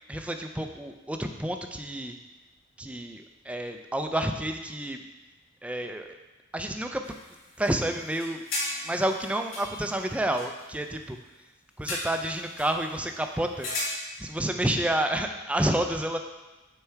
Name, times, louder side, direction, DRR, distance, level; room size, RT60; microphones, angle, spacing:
voice 1, 0.1-2.2 2.8-5.0 5.6-6.1 6.5-7.0 7.6-8.4 8.8-11.2 11.8-13.7 14.2-16.2, right 1 dB, 5° right, 5 dB, 0.3 m, -29 dB
sound 1, 7.0-7.7 8.0-10.6 11.8-12.9 13.5-13.8, left 2 dB, 80° left, 1.9 m, -36 dB
6.9 x 4.5 x 4.5 m, 1.1 s
head